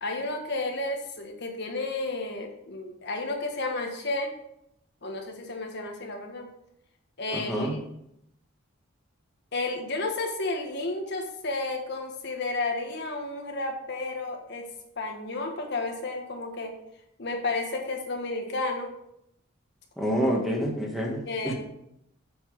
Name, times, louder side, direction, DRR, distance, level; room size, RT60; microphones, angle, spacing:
voice 1, 0.0-4.3 5.0-6.5 7.2-7.7 9.5-14.7 15.0-16.7 17.2-18.9 21.3-21.5, left 2 dB, 55° left, 2 dB, 1.4 m, -32 dB
voice 2, 7.3-7.8 20.0-21.5, equal, ahead, -1 dB, 1.7 m, -28 dB
7.4 x 7.2 x 5.1 m, 0.78 s
head